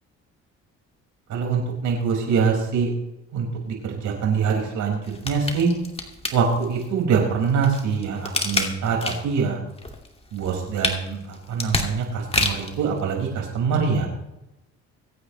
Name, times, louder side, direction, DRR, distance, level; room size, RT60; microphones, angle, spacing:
voice 1, 1.3-2.9 3.3-5.7 6.3-9.6 10.3-14.1, right 6 dB, 70° right, 0 dB, 6.0 m, -24 dB
sound 1, 5.0-6.8 7.4-9.4 9.8-12.8 13.3-13.4, left 2 dB, 20° left, 2.5 m, -28 dB
25.0 x 8.9 x 3.4 m, 0.90 s
supercardioid pair, 80°, 31 cm